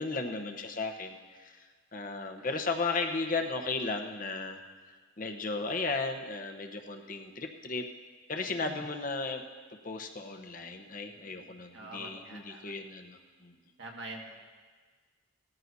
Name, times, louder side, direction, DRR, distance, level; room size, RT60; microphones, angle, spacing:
voice 1, 0.0-1.6 1.9-4.6 5.2-7.8 8.3-9.4 9.8-13.5, left 3 dB, 40° left, 5 dB, 0.9 m, -35 dB
voice 2, 11.7-12.6 13.8-14.4, right 2 dB, 60° right, 0 dB, 1.8 m, -45 dB
18.5 x 14.0 x 2.7 m, 1.5 s
head